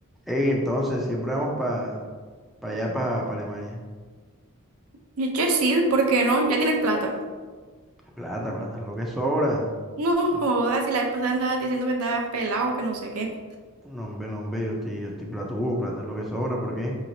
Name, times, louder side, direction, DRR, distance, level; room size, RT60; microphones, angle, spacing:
voice 1, 0.3-2.1 2.6-3.8 8.2-9.7 10.3-10.4 13.8-17.0, equal, ahead, -3 dB, 0.4 m, -28 dB
voice 2, 5.2-7.1 10.0-13.3, right 2 dB, 70° right, 2 dB, 0.6 m, -23 dB
4.9 x 3.0 x 2.6 m, 1.5 s
head